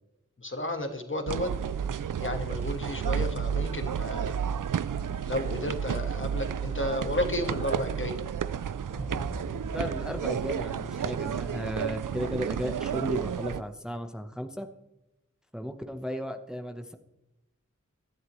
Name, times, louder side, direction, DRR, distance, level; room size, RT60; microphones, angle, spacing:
voice 1, 0.4-1.5 2.2-4.4 5.2-8.1, left 1 dB, 40° left, 6 dB, 1.6 m, -32 dB
sound 1, 1.3-13.6, right 8 dB, 90° right, 0.5 m, -31 dB
sound 2, 8.9-11.4, right 1 dB, 55° right, 2.1 m, -40 dB
voice 2, 9.7-14.7 15.5-17.0, equal, ahead, 6 dB, 1.0 m, -35 dB
17.5 x 12.0 x 3.2 m, 0.95 s
wide cardioid pair, 60°, 31 cm